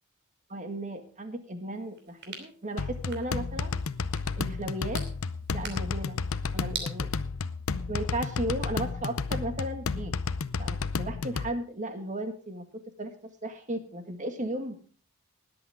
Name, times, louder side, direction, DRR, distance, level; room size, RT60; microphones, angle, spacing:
voice 1, 0.5-3.7 4.4-5.0 5.5-6.2 6.5-7.1 7.9-10.1 10.6-14.7, right 1 dB, 35° right, 7 dB, 1.9 m, -35 dB
sound 1, 1.7-6.9, right 5 dB, 55° right, 2.9 m, -45 dB
sound 2, 2.8-11.5, left 4 dB, 80° left, 0.7 m, -32 dB
20.0 x 8.4 x 3.6 m, 0.42 s
head